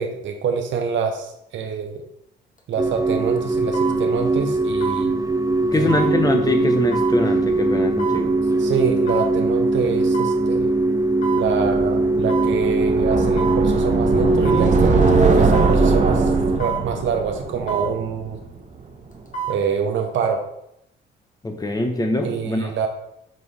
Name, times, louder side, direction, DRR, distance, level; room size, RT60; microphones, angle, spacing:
voice 1, 0.0-2.0 2.7-5.1 5.7-6.1 8.6-10.7 11.3-16.3 16.6-18.4 19.5-20.4 22.2-22.9, right 6 dB, 70° right, 4 dB, 1.0 m, -26 dB
sound 1, 2.6-2.7 3.7-4.0 4.8-5.1 5.9-6.1 6.9-7.2 8.0-8.2 9.1-9.3 10.1-10.4 11.2-11.5 12.3-12.6 13.4-13.6 14.4-14.7 15.5-15.8 16.6-16.9 17.7-17.9 19.1-19.6 20.0-20.1, right 7 dB, 40° left, 1.5 m, -28 dB
sound 2, 2.8-16.6, right 2 dB, 15° right, 0.5 m, -21 dB
voice 2, 5.7-8.3 21.4-22.9, left 2 dB, 20° left, 4 dB, 1.1 m, -23 dB
sound 3, 11.5-18.6, right 4 dB, 40° right, 1.0 m, -21 dB
7.6 x 3.9 x 3.4 m, 0.78 s
cardioid pair, 90°, 20 cm